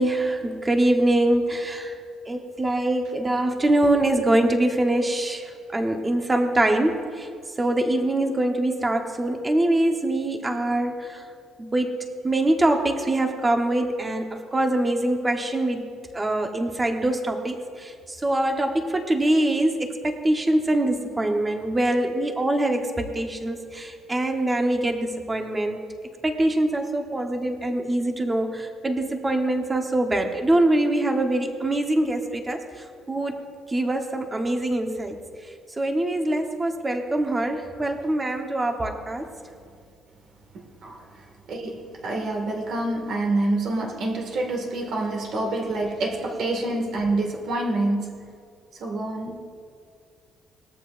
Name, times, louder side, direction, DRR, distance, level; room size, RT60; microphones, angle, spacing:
voice 1, 0.0-1.9 2.3-7.3 7.6-11.2 11.6-15.8 16.1-25.8 26.2-32.6 33.1-33.4 33.7-35.1 35.8-39.2, right 1 dB, 15° right, 4 dB, 1.0 m, -24 dB
voice 2, 40.5-41.1 41.5-48.2 48.7-49.4, right 2 dB, 55° right, 1 dB, 1.9 m, -27 dB
20.0 x 13.5 x 2.5 m, 2.3 s
cardioid pair, 175°, 0 cm